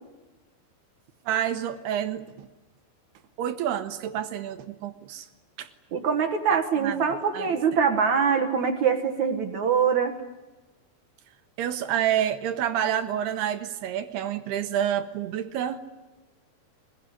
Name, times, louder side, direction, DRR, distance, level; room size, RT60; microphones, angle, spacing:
voice 1, 1.3-2.5 3.4-5.3 5.6-5.7 6.5-7.0 7.3-7.5 11.6-15.8, right 10 dB, 75° right, 8 dB, 2.8 m, -28 dB
voice 2, 5.9-10.1, right 6 dB, 55° right, 5 dB, 2.2 m, -23 dB
24.5 x 20.5 x 9.9 m, 1.1 s
omnidirectional pair, 5.1 m